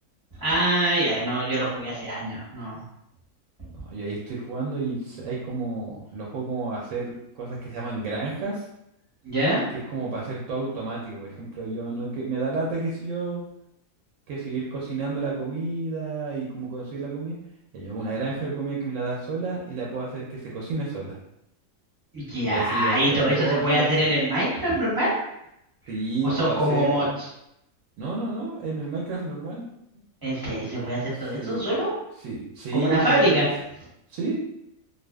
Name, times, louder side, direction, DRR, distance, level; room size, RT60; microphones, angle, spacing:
voice 1, 0.4-2.7 9.2-9.6 22.1-25.1 26.2-27.0 30.2-31.9 32.7-33.5, right 1 dB, 20° right, -8 dB, 0.6 m, -24 dB
voice 2, 3.9-8.6 9.9-13.4 14.3-17.4 17.7-21.2 22.4-24.1 25.9-27.1 28.0-29.7 31.3-31.6 32.2-33.5 34.1-34.4, right 3 dB, 70° right, -4 dB, 0.8 m, -30 dB
2.4 x 2.4 x 2.2 m, 0.81 s
omnidirectional pair, 1.6 m